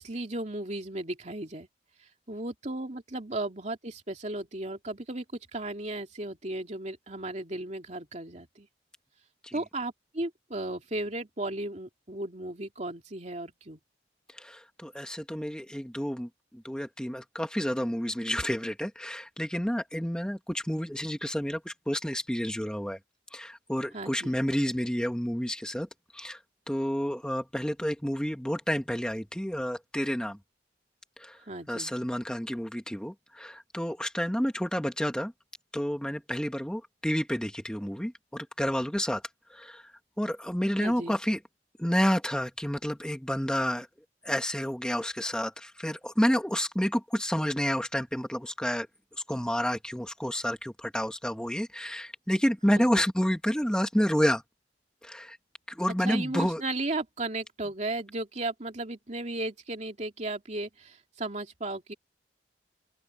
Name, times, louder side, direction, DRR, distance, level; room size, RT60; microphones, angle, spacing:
voice 1, 0.0-1.7 2.3-5.2 5.5-8.7 9.5-13.8 23.9-24.3 31.5-31.9 40.8-41.1 52.7-53.0 56.0-61.9, right 2 dB, 40° right, 2.8 m, -35 dB
voice 2, 14.3-23.0 23.3-25.9 26.1-26.4 26.7-30.4 31.2-31.4 31.7-35.3 35.7-39.2 39.5-39.9 40.2-41.4 41.8-43.9 44.2-48.9 49.3-54.4 55.0-55.4 55.7-56.6, equal, 5° left, 1.3 m, -30 dB
open air
head